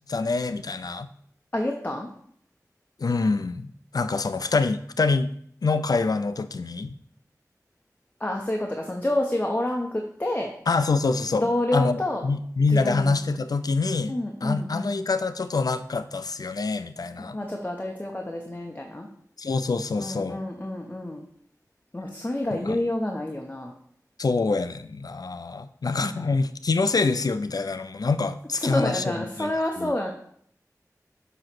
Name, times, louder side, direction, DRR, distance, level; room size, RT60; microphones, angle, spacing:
voice 1, 0.1-1.1 3.0-5.3 5.6-6.9 10.7-11.4 11.7-14.1 14.4-17.4 19.4-20.4 22.5-22.8 24.2-29.9, left 3 dB, 85° left, 12 dB, 0.4 m, -26 dB
voice 2, 1.5-2.1 8.2-10.5 11.3-12.2 12.7-13.1 14.1-15.0 17.2-19.1 20.0-21.2 21.9-23.7 26.0-26.1 28.6-30.1, left 1 dB, 25° left, 1 dB, 0.9 m, -28 dB
7.5 x 3.1 x 5.9 m, 0.64 s
wide cardioid pair, 45°, 6 cm